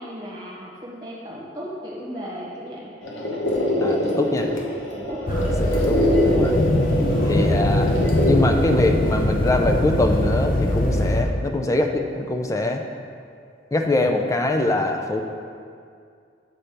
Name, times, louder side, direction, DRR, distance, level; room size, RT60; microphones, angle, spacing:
voice 1, 0.0-2.9 4.9-5.5 7.1-7.5, equal, 20° right, -6 dB, 1.6 m, -36 dB
sound 1, 3.0-8.3, left 1 dB, 85° left, 1.0 m, -25 dB
voice 2, 3.8-4.5 5.4-6.6 7.2-12.8 13.7-15.2, left 2 dB, 15° left, 4 dB, 0.4 m, -23 dB
sound 2, 5.3-11.2, left 1 dB, 45° left, 0.7 m, -21 dB
7.7 x 4.2 x 5.2 m, 2.3 s
head